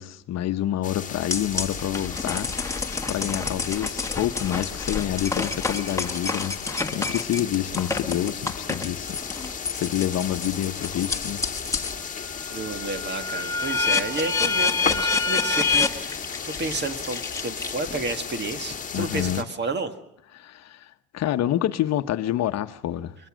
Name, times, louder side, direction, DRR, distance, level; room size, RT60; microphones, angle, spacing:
voice 1, 0.0-2.5 3.1-6.6 6.9-9.2 9.7-11.4 18.9-19.5 20.3-23.2, left 12 dB, 55° left, 1.0 m, -27 dB
sound 1, 0.8-19.4, left 6 dB, 25° left, 1.8 m, -35 dB
sound 2, 1.3-12.0 12.4-18.1, left 4 dB, 10° left, 1.7 m, -28 dB
voice 2, 12.5-19.9, right 3 dB, 35° right, 1.9 m, -31 dB
23.0 x 21.0 x 6.3 m
cardioid pair, 115°, 31 cm